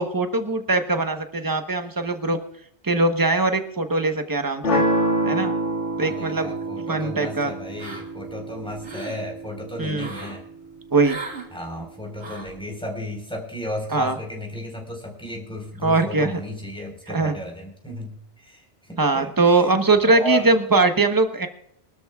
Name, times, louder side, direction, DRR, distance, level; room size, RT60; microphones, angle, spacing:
voice 1, 0.0-2.4 2.8-4.9 5.2-5.5 6.0-6.5 6.9-7.5 9.8-10.1 10.9-11.2 13.9-14.2 15.8-16.4 17.1-17.3 19.0-21.5, right 3 dB, 20° right, 7 dB, 1.1 m, -21 dB
sound 1, 4.6-10.7, right 1 dB, 80° left, 2.1 m, -27 dB
voice 2, 6.0-10.4 11.5-18.6 18.9-19.6 20.0-20.5, equal, 5° left, 0 dB, 4.4 m, -33 dB
sound 2, 7.8-8.3 8.7-9.2 10.0-10.4 11.0-11.5 12.2-12.6, right 3 dB, 80° right, 2.4 m, -37 dB
24.0 x 12.5 x 2.4 m, 0.74 s
omnidirectional pair, 1.2 m